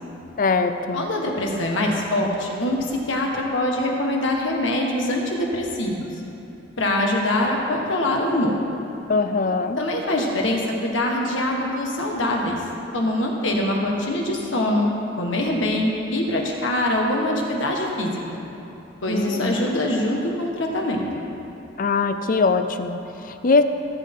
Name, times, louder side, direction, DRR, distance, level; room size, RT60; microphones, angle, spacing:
voice 1, 0.4-1.1 9.1-9.8 19.1-19.6 21.8-23.6, left 4 dB, 45° left, 9 dB, 0.6 m, -22 dB
voice 2, 0.9-6.1 6.8-8.5 9.8-12.6 12.9-14.9 15.2-18.2 19.0-21.3, left 1 dB, 85° left, 0 dB, 1.7 m, -23 dB
17.5 x 8.4 x 3.8 m, 2.9 s
head